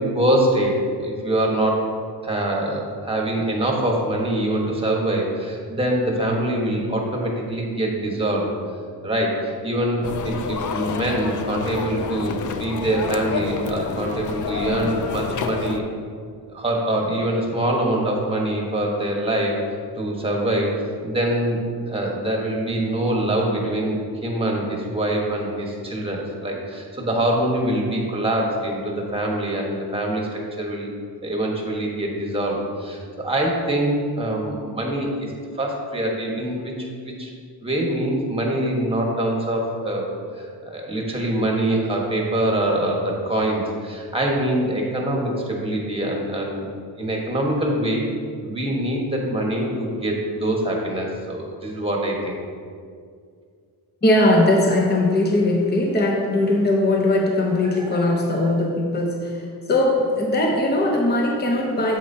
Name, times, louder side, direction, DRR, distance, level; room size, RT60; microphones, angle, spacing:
voice 1, 0.0-1.9 2.2-8.5 9.0-15.9 16.5-19.6 20.0-20.8 21.0-21.6 21.9-30.9 31.2-36.7 37.0-37.3 37.6-40.1 40.4-46.7 47.0-48.1 48.4-52.4 57.6-58.1, right 1 dB, 15° right, -1 dB, 1.3 m, -24 dB
sound 1, 10.0-15.8, left 6 dB, 50° left, 0.5 m, -29 dB
voice 2, 54.0-59.4 59.7-62.0, left 1 dB, 25° left, 0 dB, 0.8 m, -20 dB
8.8 x 7.8 x 2.8 m, 2.1 s
wide cardioid pair, 130°, 40 cm